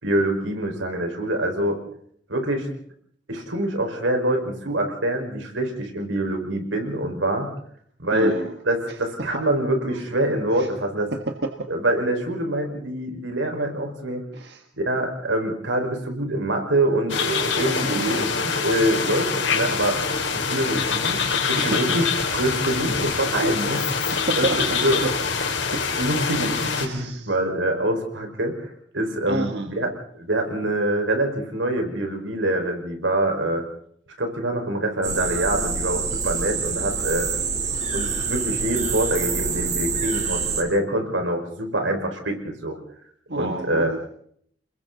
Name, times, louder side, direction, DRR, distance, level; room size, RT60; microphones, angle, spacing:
voice 1, 0.0-1.8 2.3-2.7 3.3-7.5 8.0-8.3 8.7-11.1 11.7-14.2 14.8-20.0 20.3-21.2 21.5-22.1 22.3-25.0 25.7-29.9 30.1-33.6 34.2-37.3 37.9-42.8 43.4-43.9, right 1 dB, 90° right, 4 dB, 5.3 m, -25 dB
voice 2, 8.1-8.6 10.5-10.7 11.1-11.7 14.3-14.6 17.9-18.2 21.6-21.8 23.6-24.6 25.0-25.1 25.7-25.8 26.6-27.3 29.3-29.7 43.3-44.1, right 2 dB, 60° right, 5 dB, 1.6 m, -29 dB
sound 1, 17.1-26.9, left 5 dB, 75° left, 4.1 m, -25 dB
sound 2, 35.0-40.6, right 5 dB, 40° right, 3.8 m, -26 dB
30.0 x 21.0 x 4.1 m, 0.65 s
head